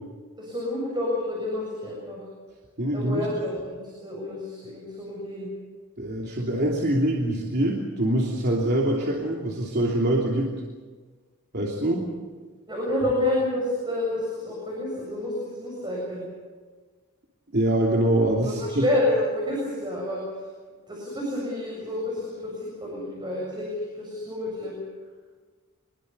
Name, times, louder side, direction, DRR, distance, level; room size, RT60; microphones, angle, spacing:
voice 1, 0.4-2.2 2.9-5.5 12.7-16.3 18.4-20.2 20.9-23.7 24.0-24.7, left 1 dB, 20° right, -3 dB, 7.3 m, -29 dB
voice 2, 2.8-3.2 6.0-10.5 11.5-12.0 17.5-18.8, right 1 dB, 50° right, -2 dB, 3.0 m, -24 dB
25.5 x 22.0 x 6.8 m, 1.4 s
head